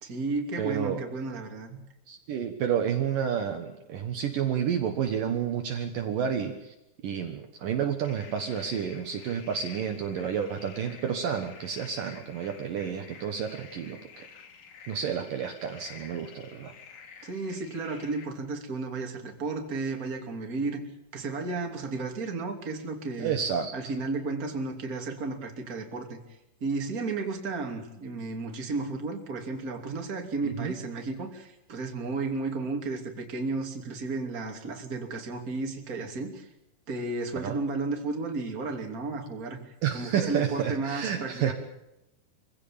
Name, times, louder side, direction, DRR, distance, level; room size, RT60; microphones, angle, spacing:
voice 1, 0.0-1.8 17.2-20.8 21.1-23.3 23.6-26.2 26.6-36.5 36.9-39.6 39.9-41.5, right 3 dB, 25° right, 3 dB, 2.9 m, -33 dB
voice 2, 0.6-1.0 2.1-6.7 7.0-14.3 14.9-16.7 23.2-23.7 30.4-30.7 37.4-37.6 39.8-41.5, right 8 dB, 65° right, 5 dB, 2.8 m, -30 dB
sound 1, 8.1-18.3, left 6 dB, 50° left, 3.2 m, -50 dB
24.5 x 16.5 x 8.8 m, 0.91 s
omnidirectional pair, 4.7 m